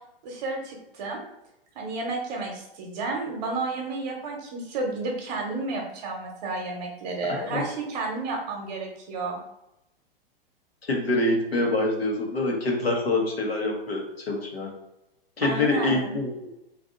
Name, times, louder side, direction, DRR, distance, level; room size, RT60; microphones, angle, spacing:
voice 1, 0.2-1.2 1.8-9.4 15.4-16.1, right 3 dB, 45° right, 1 dB, 0.8 m, -31 dB
voice 2, 7.3-7.6 10.8-14.7 15.4-16.3, left 2 dB, 85° left, -1 dB, 1.1 m, -25 dB
2.7 x 2.6 x 3.7 m, 0.86 s
figure-of-eight pair, 110°, 30 cm